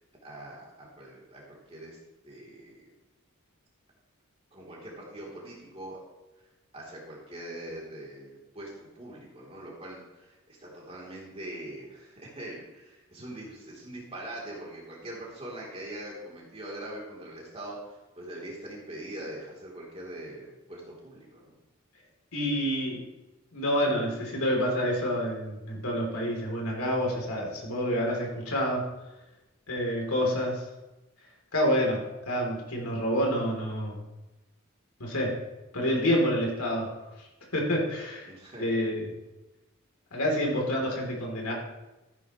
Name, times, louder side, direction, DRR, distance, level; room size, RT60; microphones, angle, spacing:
voice 1, 0.2-2.0 2.2-2.9 4.5-6.0 6.7-21.5 38.3-38.8, right 1 dB, 25° right, -4 dB, 3.4 m, -42 dB
voice 2, 22.3-23.0 23.5-28.8 29.7-30.6 31.5-34.0 35.0-35.4 35.7-36.9 37.5-38.3 38.6-39.1 40.1-41.5, equal, 85° left, -1 dB, 3.5 m, -28 dB
14.5 x 10.5 x 3.2 m, 1.0 s
head